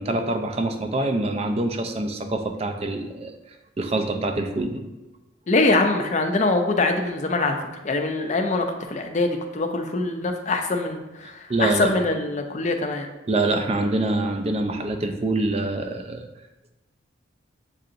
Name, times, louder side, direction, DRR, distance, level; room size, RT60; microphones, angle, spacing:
voice 1, 0.0-3.3 3.8-4.8 11.5-11.9 13.3-16.3, right 2 dB, 30° right, 6 dB, 0.4 m, -25 dB
voice 2, 5.5-7.6 7.8-13.1, left 2 dB, 35° left, 5 dB, 0.4 m, -23 dB
7.4 x 2.8 x 2.5 m, 1.0 s
head